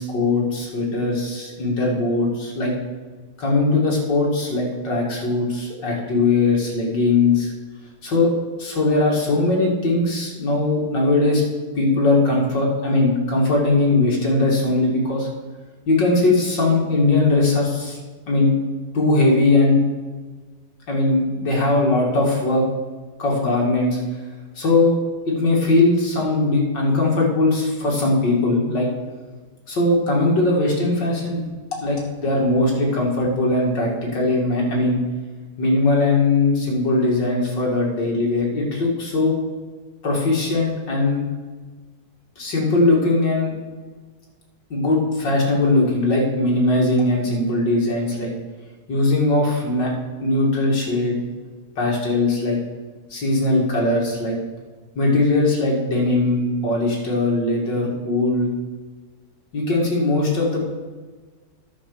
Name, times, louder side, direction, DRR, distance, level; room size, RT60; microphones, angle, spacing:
voice 1, 0.0-2.7 3.4-7.5 8.0-8.3 8.6-11.4 11.8-15.3 15.9-18.0 18.3-18.5 18.9-19.8 20.9-22.7 23.2-24.0 24.6-25.0 25.3-28.9 29.7-31.4 31.8-35.0 35.6-39.3 40.0-41.2 42.4-43.5 44.7-48.3 48.9-49.9 50.2-51.2 51.8-52.6 53.1-54.4 54.9-58.5 59.5-60.7, left 2 dB, 75° left, -2 dB, 3.0 m, -20 dB
10.5 x 5.0 x 6.9 m, 1.3 s
omnidirectional pair, 2.0 m